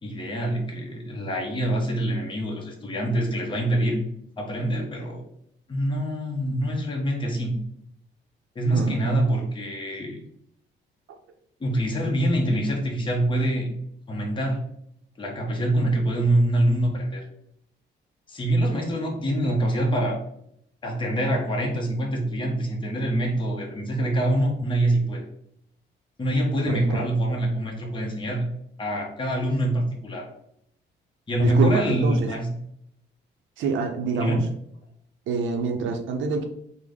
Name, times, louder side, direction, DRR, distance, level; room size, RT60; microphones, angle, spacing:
voice 1, 0.0-4.0 4.4-5.2 5.7-7.6 8.5-10.2 11.6-13.7 14.1-14.6 15.2-17.2 18.3-20.2 20.8-25.2 26.2-28.4 28.8-30.3 31.3-32.5 34.2-34.4, right 1 dB, 25° left, 0 dB, 0.8 m, -25 dB
voice 2, 26.7-27.0 31.4-32.3 33.6-34.4 35.3-36.5, right 4 dB, 75° right, 5 dB, 0.6 m, -26 dB
3.4 x 2.1 x 3.5 m, 0.73 s
cardioid pair, 90°, 20 cm